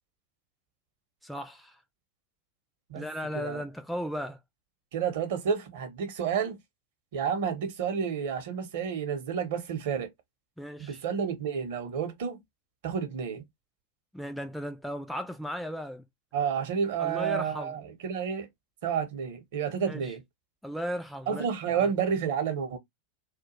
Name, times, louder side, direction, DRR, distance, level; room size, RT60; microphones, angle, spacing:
voice 1, 1.2-1.8 2.9-4.4 10.6-11.0 14.1-16.0 17.0-17.8 19.9-20.1 20.6-21.9, equal, ahead, 0.3 m, -36 dB
voice 2, 4.9-6.6 7.1-10.1 10.8-12.4 12.8-13.4 16.3-18.5 18.8-20.2 21.3-22.8, right 7 dB, 55° right, 0.7 m, -30 dB
2.2 x 2.1 x 2.9 m
figure-of-eight pair, 85°, 0 cm